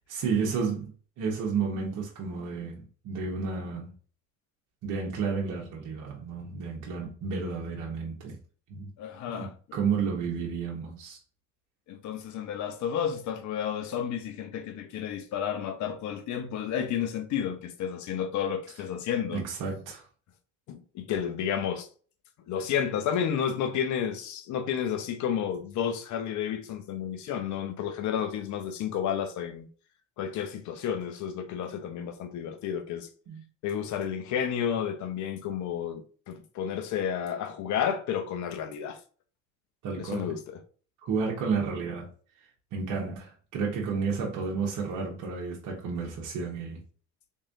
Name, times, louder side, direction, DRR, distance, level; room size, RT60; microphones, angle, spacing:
voice 1, 0.1-3.9 4.8-8.4 8.7-8.9 9.3-11.2 19.3-20.1 33.3-33.4 39.8-40.3 41.0-42.1 42.7-46.8, right 5 dB, 60° right, 1.2 m, -31 dB
voice 2, 9.0-9.5 11.9-19.5 20.7-21.9 22.5-29.7 30.2-33.1 33.6-39.0 40.0-40.6, left 8 dB, 55° left, 0.9 m, -31 dB
3.6 x 3.2 x 2.7 m
supercardioid pair, 85°, 35 cm